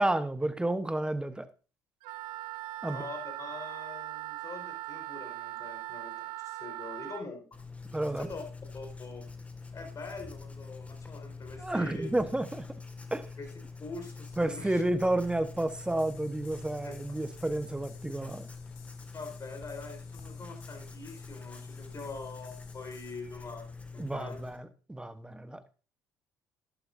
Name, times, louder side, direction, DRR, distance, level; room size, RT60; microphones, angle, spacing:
voice 1, 0.0-1.4 2.8-3.0 7.9-8.3 11.6-12.6 13.1-13.2 14.4-18.5 24.0-25.6, right 1 dB, 10° right, 11 dB, 1.2 m, -31 dB
Wind instrument woodwind instrument, 2.0-7.2, right 18 dB, 75° right, 0.6 m, -40 dB
voice 2, 2.9-7.4 8.0-8.4 8.7-9.3 9.7-12.1 13.4-13.5 13.8-14.8 16.8-16.9 19.1-24.4, left 3 dB, 40° left, 5 dB, 4.8 m, -44 dB
Writing, 7.5-24.6, left 4 dB, 15° left, 1.9 m, -45 dB
sound 1, 15.8-23.1, left 7 dB, 70° left, 2.6 m, -58 dB
12.0 x 11.5 x 2.7 m, 0.36 s
hypercardioid pair, 55°, 9 cm